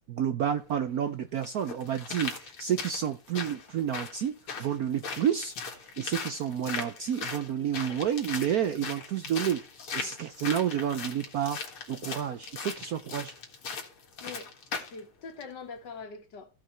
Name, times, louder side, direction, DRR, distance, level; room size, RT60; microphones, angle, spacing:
voice 1, 0.1-9.6 9.9-11.6 11.9-13.3, right 9 dB, 80° right, 0.8 m, -30 dB
sound 1, 0.6-0.7 1.4-15.0 15.4-15.5, left 5 dB, 80° left, 2.6 m, -39 dB
voice 2, 14.2-16.5, left 4 dB, 55° left, 2.0 m, -44 dB
15.5 x 5.2 x 4.4 m
omnidirectional pair, 2.4 m